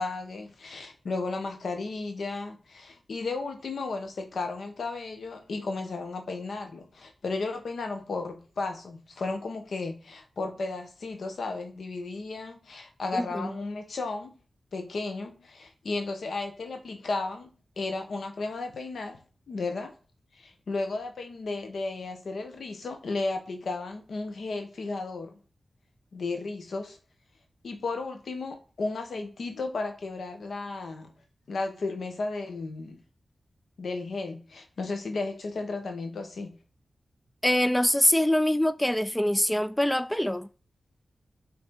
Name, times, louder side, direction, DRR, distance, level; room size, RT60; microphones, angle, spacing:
voice 1, 0.0-14.3 14.7-17.5 17.8-19.2 19.5-19.9 20.3-25.4 26.1-27.0 27.6-31.1 31.5-33.0 33.8-36.6, left 3 dB, 80° left, 1.0 m, -34 dB
voice 2, 13.1-13.5 37.4-40.5, left 1 dB, 10° left, 0.3 m, -24 dB
6.1 x 4.0 x 4.7 m
cardioid pair, 45°, 0 cm